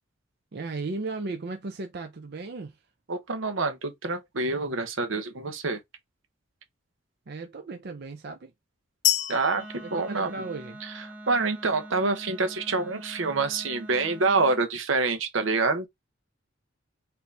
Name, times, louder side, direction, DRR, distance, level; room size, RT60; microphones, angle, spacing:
voice 1, 0.5-2.8 7.3-8.5 9.8-10.8, right 3 dB, 55° right, 0.6 m, -36 dB
voice 2, 3.1-5.8 9.3-10.3 11.3-15.9, right 3 dB, 80° right, 0.9 m, -26 dB
sound 1, 9.0-11.0, left 14 dB, 40° left, 0.4 m, -29 dB
Wind instrument woodwind instrument, 9.5-14.7, right 1 dB, 10° right, 0.8 m, -44 dB
4.4 x 2.7 x 3.3 m
head